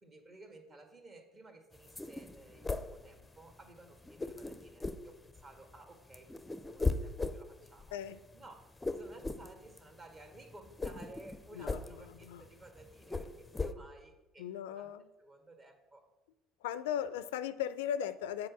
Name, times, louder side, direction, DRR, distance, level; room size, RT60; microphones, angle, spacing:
voice 1, 0.0-6.4 6.7-8.0 8.3-14.9 15.2-16.1, right 2 dB, 35° right, 4 dB, 1.6 m, -55 dB
sound 1, 1.8-3.7 4.0-5.8 6.0-13.7, left 3 dB, 15° left, 0.5 m, -38 dB
voice 2, 14.4-15.0 16.6-18.5, left 9 dB, 85° left, 14 dB, 0.3 m, -37 dB
7.6 x 4.1 x 6.0 m, 1.1 s
hypercardioid pair, 75°, 0 cm